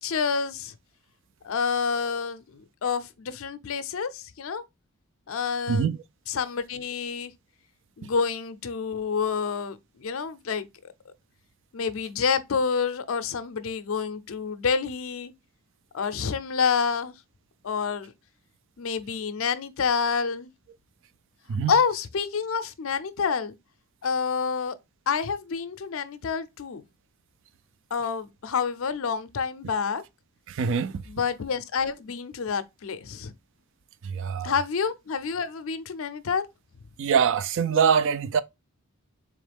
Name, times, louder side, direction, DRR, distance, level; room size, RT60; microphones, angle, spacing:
voice 1, 0.0-0.7 1.4-4.6 5.3-5.9 6.3-7.3 8.0-10.7 11.7-15.3 15.9-17.1 17.6-18.1 18.8-20.5 21.7-23.6 24.0-24.8 25.1-26.8 27.9-30.0 31.1-33.3 34.4-36.5, left 5 dB, 65° left, 0.5 m, -28 dB
voice 2, 30.5-30.9 34.1-34.5 37.0-38.4, right 6 dB, 55° right, 0.3 m, -23 dB
3.8 x 3.1 x 3.4 m
head